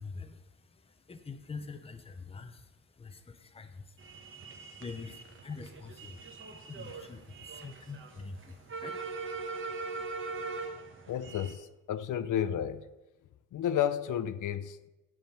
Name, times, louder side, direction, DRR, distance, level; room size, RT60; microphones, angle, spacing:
voice 1, 0.0-9.7 10.0-10.7, left 4 dB, 20° left, 8 dB, 0.6 m, -46 dB
sound 1, 4.0-11.5, right 4 dB, 40° right, 1.0 m, -41 dB
voice 2, 11.1-12.9 13.5-14.9, left 10 dB, 80° left, 13 dB, 0.5 m, -32 dB
10.5 x 3.7 x 6.5 m, 1.1 s
wide cardioid pair, 165°, 31 cm